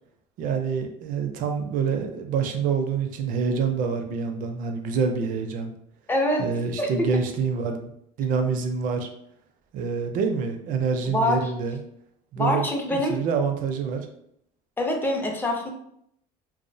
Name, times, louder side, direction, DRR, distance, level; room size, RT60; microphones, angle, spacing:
voice 1, 0.4-5.7 6.4-7.9 8.2-9.1 9.7-11.8 12.3-12.7 12.9-14.1, right 5 dB, 55° right, 5 dB, 0.4 m, -26 dB
voice 2, 6.1-6.5 6.8-7.2 11.1-11.5 12.4-13.2 14.8-15.7, left 1 dB, 10° left, 2 dB, 0.4 m, -25 dB
2.4 x 2.0 x 2.6 m, 0.73 s
cardioid pair, 125°, 16 cm